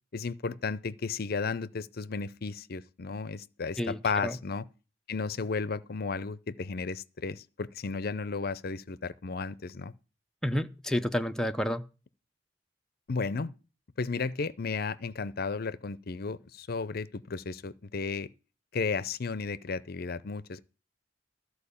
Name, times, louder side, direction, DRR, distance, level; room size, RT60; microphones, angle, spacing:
voice 1, 0.1-4.7 5.1-9.9 13.1-13.6 14.0-18.3 18.7-20.6, left 4 dB, 55° left, 0.6 m, -34 dB
voice 2, 3.8-4.4 10.4-11.8, equal, 5° left, 0.6 m, -30 dB
13.5 x 4.7 x 8.4 m
head